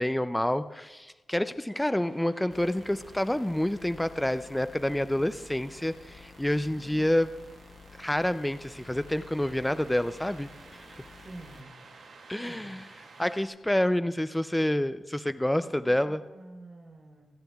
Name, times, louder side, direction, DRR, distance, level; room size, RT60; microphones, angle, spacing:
voice 1, 0.0-7.3 8.0-10.5 12.3-12.8 13.2-16.2, left 1 dB, 5° left, 12 dB, 0.3 m, -28 dB
sound 1, 1.9-13.5, right 4 dB, 80° right, 2.2 m, -54 dB
sound 2, 2.5-11.6, left 4 dB, 40° left, 0.7 m, -51 dB
voice 2, 6.7-7.2 11.2-11.8 12.3-12.8 15.6-17.3, right 2 dB, 35° right, 0 dB, 3.3 m, -48 dB
26.5 x 9.8 x 2.3 m, 1.2 s
wide cardioid pair, 110°, 0 cm